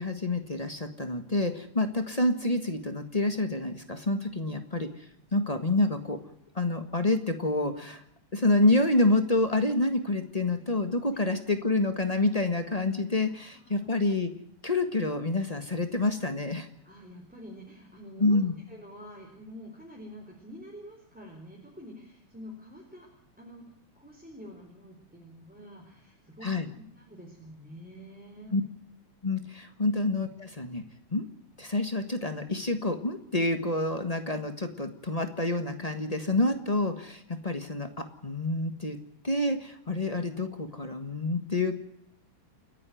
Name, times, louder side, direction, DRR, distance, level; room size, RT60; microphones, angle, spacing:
voice 1, 0.0-6.2 6.5-8.0 8.3-14.3 14.6-16.7 18.2-18.5 26.4-26.7 28.5-28.6 29.2-30.8 31.1-31.2 31.6-39.0 39.2-41.7, left 2 dB, 40° left, 7 dB, 0.5 m, -28 dB
voice 2, 13.3-14.1 16.8-23.1 23.4-28.6, equal, 5° right, 0 dB, 4.0 m, -47 dB
29.5 x 11.0 x 9.3 m, 0.72 s
omnidirectional pair, 3.6 m